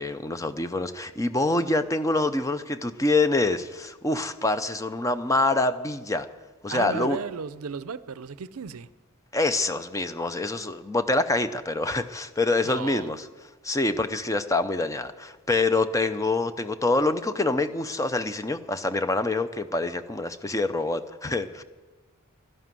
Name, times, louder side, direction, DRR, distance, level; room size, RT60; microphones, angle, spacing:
voice 1, 0.0-6.3 6.6-7.2 9.3-13.3 13.6-21.6, left 2 dB, 15° left, 0.5 m, -26 dB
voice 2, 6.7-8.9 12.6-13.1, right 5 dB, 85° right, 0.5 m, -35 dB
12.0 x 11.0 x 7.6 m
head